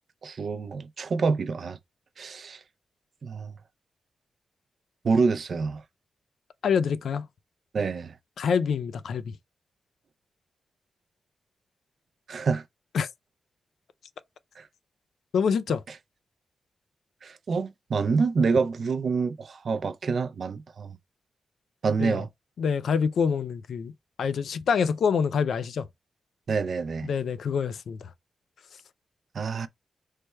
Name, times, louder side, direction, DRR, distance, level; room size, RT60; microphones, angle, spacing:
voice 1, 0.2-1.8 2.2-2.6 3.2-3.5 5.0-5.8 7.7-8.1 12.3-12.6 14.6-14.7 17.2-21.0 21.8-22.3 26.5-27.1 29.3-29.7, right 4 dB, 60° right, 0.4 m, -27 dB
voice 2, 6.6-7.3 8.4-9.3 12.9-13.1 15.3-15.8 22.0-22.2 22.6-23.9 24.2-25.9 27.0-28.1, left 6 dB, 85° left, 0.3 m, -26 dB
3.2 x 2.2 x 4.2 m
wide cardioid pair, 115°, 0 cm